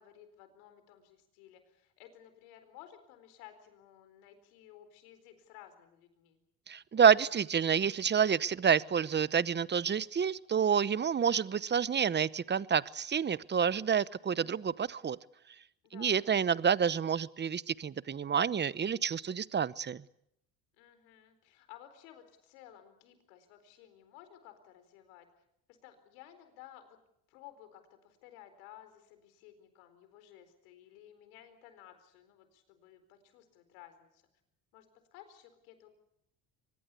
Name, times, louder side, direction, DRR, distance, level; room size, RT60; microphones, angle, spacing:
voice 1, 0.0-6.4 15.8-16.6 20.8-25.3 25.7-27.0 27.3-34.2 34.7-35.9, left 11 dB, 90° left, 9 dB, 4.3 m, -56 dB
voice 2, 6.7-15.2 15.9-20.0, right 7 dB, 25° right, 19 dB, 0.9 m, -28 dB
24.0 x 21.0 x 8.3 m, 0.78 s
supercardioid pair, 85°, 42 cm